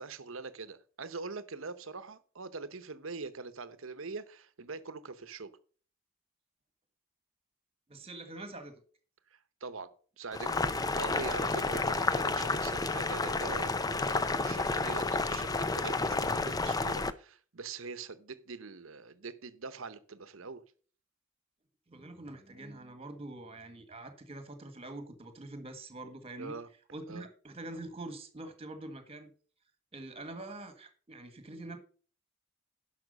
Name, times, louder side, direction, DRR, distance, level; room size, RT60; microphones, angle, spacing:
voice 1, 0.0-5.5 9.3-9.9 10.2-20.6 26.4-26.7 27.1-27.3, right 4 dB, 70° right, 13 dB, 0.9 m, -43 dB
voice 2, 7.9-8.8 21.9-26.6 26.9-29.3 29.9-31.8, right 2 dB, 30° right, 9 dB, 1.6 m, -45 dB
Boiling, 10.3-17.1, left 3 dB, 20° left, 0.5 m, -31 dB
11.0 x 6.0 x 5.3 m, 0.41 s
head